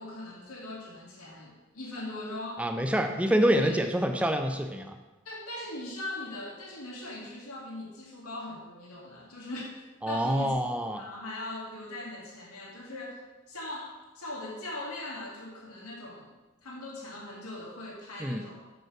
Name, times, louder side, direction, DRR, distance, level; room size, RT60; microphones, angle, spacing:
voice 1, 0.0-2.7 3.5-3.8 5.2-10.5 10.9-13.2 13.5-16.3 16.6-18.6, left 2 dB, 90° left, -3 dB, 2.3 m, -40 dB
voice 2, 2.6-5.0 10.0-11.0 18.2-18.4, equal, 5° right, 6 dB, 0.5 m, -26 dB
6.2 x 5.3 x 6.0 m, 1.1 s
head